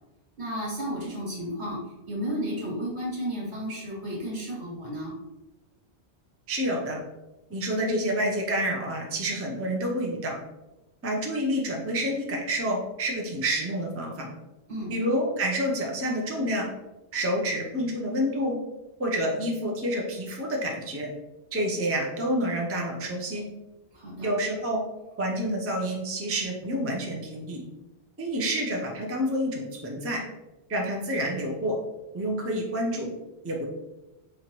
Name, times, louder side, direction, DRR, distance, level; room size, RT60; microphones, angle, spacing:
voice 1, 0.4-1.8 2.1-5.1 14.7-15.0 23.9-24.3, equal, 75° right, -4 dB, 1.7 m, -33 dB
voice 2, 6.5-7.0 7.5-10.4 11.0-14.3 14.9-16.7 17.1-18.6 19.0-21.1 21.5-23.4 24.2-24.8 25.2-27.6 28.2-30.2 30.7-31.8 32.1-33.1 33.4-33.6, equal, 20° right, -1 dB, 0.4 m, -28 dB
4.4 x 2.6 x 3.0 m, 1.0 s
omnidirectional pair, 1.1 m